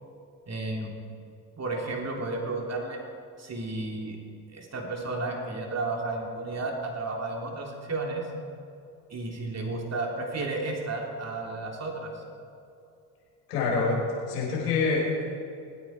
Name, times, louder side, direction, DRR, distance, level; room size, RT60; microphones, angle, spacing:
voice 1, 0.5-0.9 1.6-3.0 3.4-4.2 4.5-8.3 9.1-12.2, right 2 dB, 35° right, 1 dB, 3.3 m, -32 dB
voice 2, 13.5-15.3, left 4 dB, 90° left, -3 dB, 4.5 m, -26 dB
23.5 x 9.8 x 4.7 m, 2.6 s
hypercardioid pair, 60°, 46 cm